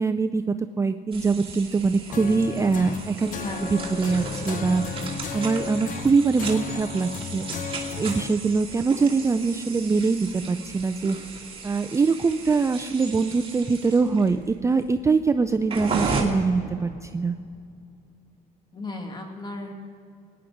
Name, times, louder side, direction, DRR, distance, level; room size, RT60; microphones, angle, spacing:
voice 1, 0.0-3.3 3.7-4.8 5.3-11.2 11.6-17.4, right 4 dB, 15° right, 8 dB, 0.4 m, -23 dB
sound 1, 1.1-16.2, right 4 dB, 35° right, 2.4 m, -36 dB
sound 2, 2.1-8.3, left 6 dB, 50° left, 0.8 m, -34 dB
voice 2, 3.2-4.2 18.7-19.7, left 2 dB, 25° left, 3 dB, 2.1 m, -36 dB
21.0 x 9.9 x 5.1 m, 2.3 s
cardioid pair, 110°, 17 cm